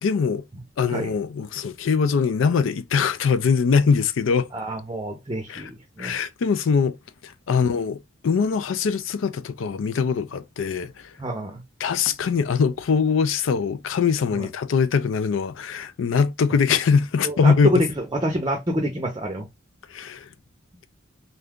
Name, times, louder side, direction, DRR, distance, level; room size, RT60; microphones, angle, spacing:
voice 1, 0.0-0.4 0.8-4.5 5.5-5.7 6.0-7.0 7.2-10.9 11.8-17.8 19.9-20.3, left 5 dB, 85° left, 0.4 m, -22 dB
voice 2, 4.5-6.2 11.2-11.6 14.3-14.5 17.2-19.5, equal, 25° right, 0.6 m, -27 dB
2.6 x 2.3 x 3.5 m
head